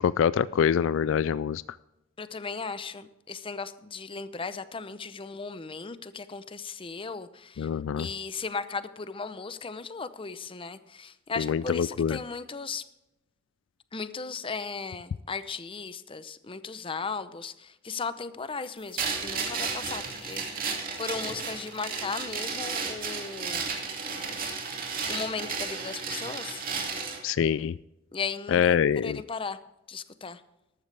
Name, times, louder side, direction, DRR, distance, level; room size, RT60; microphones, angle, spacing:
voice 1, 0.0-1.6 7.6-8.1 11.4-12.2 27.2-27.8 28.5-29.2, left 8 dB, 65° left, 18 dB, 0.3 m, -25 dB
voice 2, 2.2-7.7 8.0-12.8 13.9-23.7 25.1-26.7 28.1-29.6 29.9-30.4, left 4 dB, 25° left, 13 dB, 0.7 m, -36 dB
sound 1, 19.0-27.2, right 5 dB, 45° right, 2.5 m, -33 dB
14.5 x 12.5 x 3.4 m, 0.91 s
head